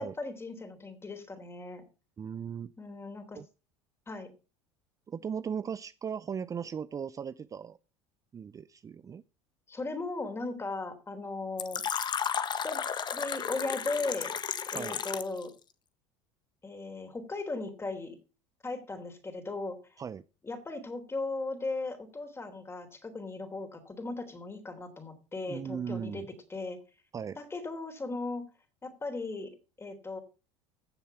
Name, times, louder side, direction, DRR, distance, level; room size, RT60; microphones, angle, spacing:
voice 1, 0.0-1.8 2.8-3.4 4.1-4.3 9.7-11.8 12.6-12.8 13.1-14.3 14.7-15.5 16.6-18.2 18.6-19.8 20.4-26.2 26.5-26.8 27.4-28.4 28.8-29.5 29.8-30.2, left 3 dB, 20° left, 9 dB, 3.5 m, -37 dB
voice 2, 2.2-2.7 3.4-3.5 5.1-7.8 8.3-9.2 14.7-15.0 20.0-20.2 25.5-26.3 27.1-27.4, right 7 dB, 25° right, 16 dB, 0.5 m, -37 dB
Fill (with liquid), 11.6-15.4, left 7 dB, 35° left, 1.2 m, -33 dB
15.0 x 7.2 x 5.6 m, 0.33 s
supercardioid pair, 90°, 13 cm